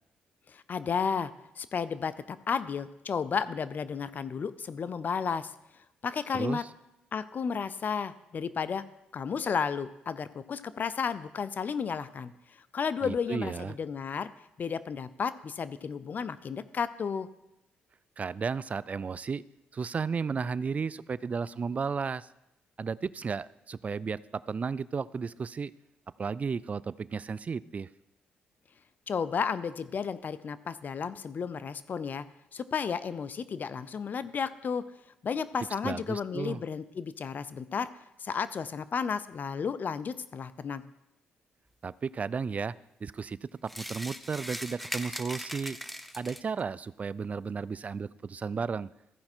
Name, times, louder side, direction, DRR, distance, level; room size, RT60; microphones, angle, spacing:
voice 1, 0.5-5.5 6.0-6.6 7.1-8.8 9.1-12.3 12.7-14.3 14.6-17.3 29.1-32.2 32.5-34.8 35.2-37.9 38.2-40.8, left 6 dB, 50° left, 15 dB, 0.5 m, -33 dB
voice 2, 13.0-13.7 18.2-19.4 19.7-22.3 22.8-25.7 26.2-27.9 35.8-36.6 41.8-42.7 43.0-45.8 46.1-48.9, right 5 dB, 40° right, 19 dB, 0.3 m, -33 dB
sound 1, 43.7-46.6, equal, ahead, 0.6 m, -39 dB
14.5 x 5.3 x 4.4 m, 0.87 s
supercardioid pair, 65°, 4 cm